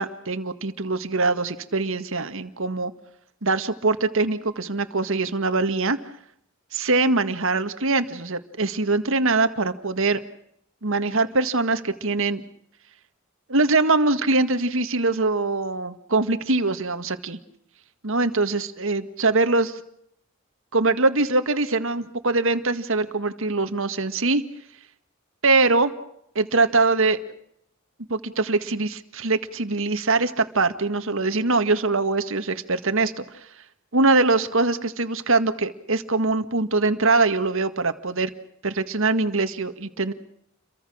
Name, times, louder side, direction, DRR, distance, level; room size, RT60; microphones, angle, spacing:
voice 1, 0.0-2.9 3.4-6.0 6.7-10.2 10.8-12.4 13.5-17.4 18.0-19.8 20.7-24.4 25.4-25.9 26.3-27.2 28.1-33.2 33.9-38.3 38.6-40.1, right 3 dB, 65° right, 9 dB, 1.9 m, -23 dB
29.5 x 23.5 x 6.4 m, 0.72 s
head